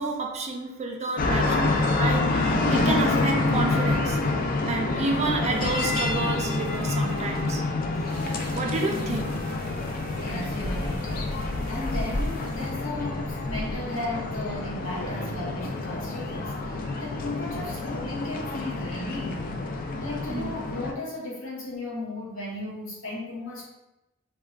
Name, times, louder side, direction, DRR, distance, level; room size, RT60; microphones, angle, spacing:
voice 1, 0.0-4.2 4.7-7.6 8.5-9.4 20.3-20.5, right 3 dB, 35° right, 2 dB, 0.4 m, -30 dB
sound 1, 1.2-20.9, left 2 dB, 45° left, 0.3 m, -27 dB
sound 2, 5.5-12.7, right 1 dB, 85° right, 0.5 m, -45 dB
Wind instrument woodwind instrument, 5.8-11.4, right 1 dB, 90° left, 1.2 m, -47 dB
voice 2, 10.2-19.7 20.0-23.7, left 2 dB, 75° left, -4 dB, 0.9 m, -35 dB
3.5 x 2.2 x 2.3 m, 0.94 s
head